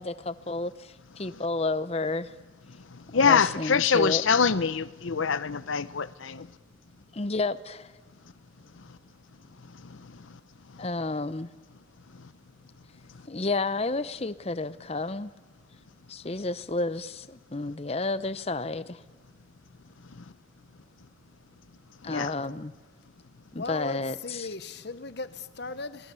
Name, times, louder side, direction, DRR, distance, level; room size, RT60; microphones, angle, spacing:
voice 1, 0.0-2.3 3.1-4.2 7.1-7.9 10.8-11.5 13.3-15.3 16.1-19.0 22.0-22.7 23.5-24.5, left 3 dB, 30° left, 0.7 m, -31 dB
voice 2, 2.9-6.5 9.9-10.1 22.0-22.3, left 6 dB, 85° left, 0.7 m, -25 dB
voice 3, 23.6-26.0, left 3 dB, 55° left, 1.0 m, -37 dB
28.0 x 19.0 x 7.0 m
head